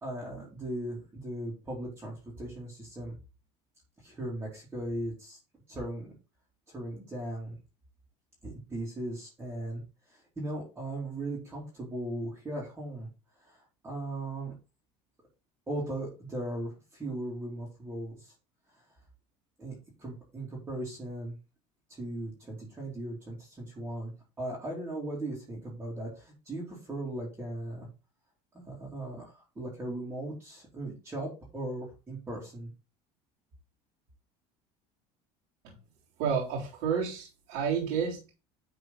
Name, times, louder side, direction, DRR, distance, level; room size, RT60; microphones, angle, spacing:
voice 1, 0.0-3.2 4.0-5.4 5.7-6.1 6.7-7.6 8.4-13.1 13.4-14.5 15.7-18.3 18.7-18.8 19.6-21.4 21.9-27.9 28.5-32.7, right 1 dB, 15° right, -6 dB, 3.0 m, -38 dB
voice 2, 36.2-38.3, right 6 dB, 80° right, -6 dB, 3.6 m, -30 dB
11.0 x 4.4 x 4.0 m, 0.30 s
cardioid pair, 145°, 14 cm